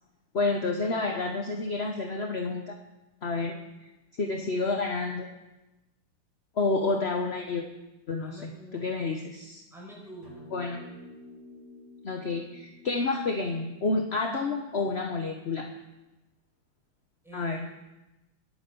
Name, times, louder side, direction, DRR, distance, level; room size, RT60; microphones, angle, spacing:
voice 1, 0.3-2.7 3.2-3.6 4.2-5.3 6.6-7.6 8.1-9.6 10.5-10.8 12.0-15.7 17.3-17.7, left 3 dB, 40° left, 3 dB, 1.0 m, -29 dB
voice 2, 8.2-9.0 9.7-10.5 17.2-17.7, right 1 dB, ahead, -2 dB, 5.5 m, -46 dB
sound 1, 10.2-14.8, left 1 dB, 60° left, 5.5 m, -50 dB
21.0 x 9.5 x 7.1 m, 1.0 s
omnidirectional pair, 2.4 m